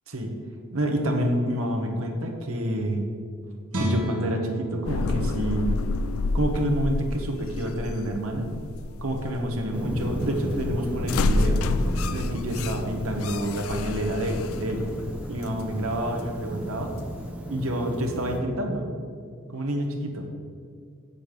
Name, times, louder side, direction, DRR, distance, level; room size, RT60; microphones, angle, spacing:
voice 1, 0.7-3.0 3.8-5.7 6.3-8.4 9.0-11.6 12.0-14.9 15.3-16.9 17.5-18.9 19.5-20.3, right 1 dB, 70° right, 3 dB, 1.4 m, -28 dB
Guitar, 3.7-6.9 7.3-7.4, right 1 dB, 85° right, 1.6 m, -33 dB
sound 1, 4.8-17.3, left 2 dB, 70° left, 0.4 m, -30 dB
sound 2, 9.7-18.4, equal, 5° right, 0.8 m, -34 dB
7.8 x 6.9 x 6.8 m, 2.2 s
head